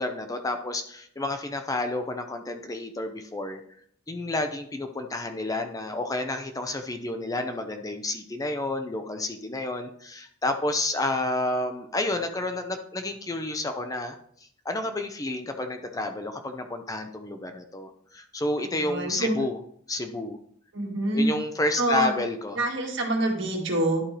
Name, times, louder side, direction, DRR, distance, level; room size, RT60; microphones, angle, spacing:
voice 1, 0.0-3.6 4.1-14.1 14.6-19.6 19.9-20.4 21.1-22.6, left 2 dB, 15° left, 6 dB, 0.5 m, -30 dB
voice 2, 18.6-19.4 20.7-21.3 21.8-22.2 22.6-24.0, right 2 dB, 65° right, 0 dB, 1.8 m, -26 dB
11.0 x 4.4 x 3.2 m, 0.62 s
head